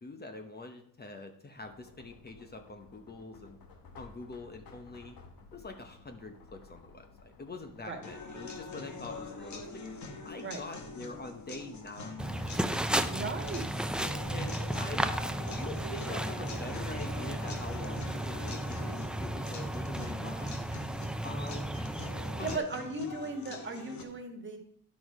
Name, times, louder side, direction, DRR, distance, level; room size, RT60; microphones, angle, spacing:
voice 1, 0.0-3.6 4.0-5.2 5.5-9.8 10.2-12.3 14.3-15.2 15.5-20.5 20.9-21.8 22.1-22.6, left 3 dB, 30° left, 6 dB, 1.0 m, -45 dB
sound 1, 1.6-18.7, left 4 dB, 80° left, 1.5 m, -55 dB
sound 2, 8.0-24.0, left 3 dB, 55° left, 1.6 m, -45 dB
sound 3, 12.2-22.6, right 1 dB, 5° right, 0.5 m, -34 dB
voice 2, 13.0-13.8 22.4-24.6, right 3 dB, 35° right, 3 dB, 1.7 m, -37 dB
11.0 x 6.2 x 4.8 m, 0.67 s
cardioid pair, 125°, 34 cm